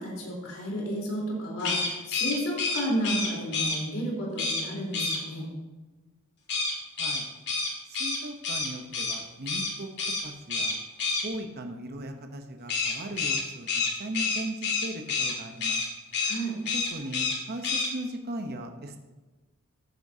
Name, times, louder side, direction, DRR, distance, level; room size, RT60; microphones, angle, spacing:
voice 1, 0.0-5.5 16.2-16.6, equal, 75° left, -3 dB, 3.7 m, -32 dB
sound 1, 1.6-3.8 4.4-4.6 4.9-5.2 6.5-9.2 9.5-9.7 10.0-10.2 10.5-11.2 12.7-15.3 15.6-15.9 16.1-16.4 16.6-17.4 17.6-17.9, left 4 dB, 55° left, 2.2 m, -28 dB
voice 2, 7.9-9.9 10.2-10.8 11.2-15.8 16.7-19.0, right 1 dB, 50° right, 5 dB, 0.9 m, -38 dB
14.5 x 9.7 x 2.8 m, 1.2 s
head